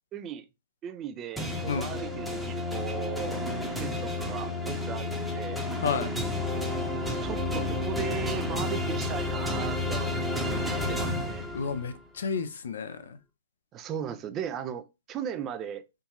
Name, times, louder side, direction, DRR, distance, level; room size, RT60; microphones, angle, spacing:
voice 1, 0.1-0.5 0.8-3.4 3.8-5.6 7.2-11.5 13.7-15.9, right 9 dB, 25° right, 0.4 m, -37 dB
sound 1, 1.4-12.0, left 2 dB, ahead, 0.8 m, -31 dB
voice 2, 1.7-2.0 5.8-6.1 11.5-13.2, left 5 dB, 70° left, 0.6 m, -31 dB
3.6 x 2.6 x 3.0 m
hypercardioid pair, 120°, 0 cm